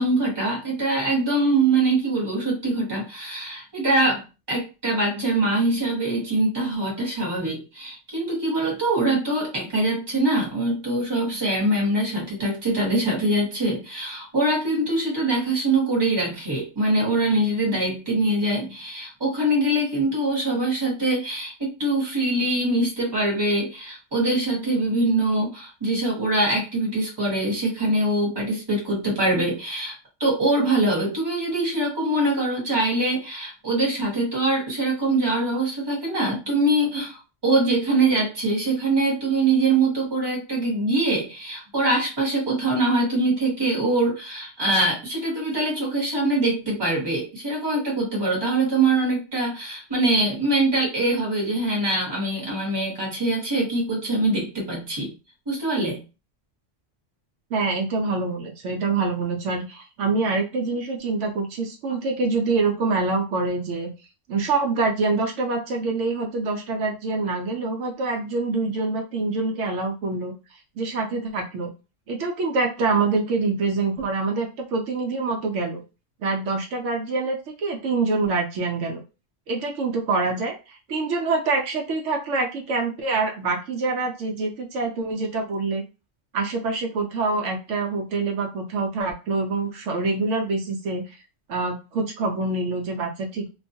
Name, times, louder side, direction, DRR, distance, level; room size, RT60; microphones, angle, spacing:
voice 1, 0.0-55.1 55.5-56.0, right 2 dB, 20° right, -2 dB, 1.0 m, -23 dB
voice 2, 57.5-63.9 64.3-70.3 70.8-71.7 72.1-75.8 76.2-79.0 79.5-85.8 86.3-91.2 91.5-93.5, right 3 dB, 75° right, 1 dB, 0.9 m, -25 dB
2.4 x 2.2 x 2.6 m, 0.30 s
omnidirectional pair, 1.3 m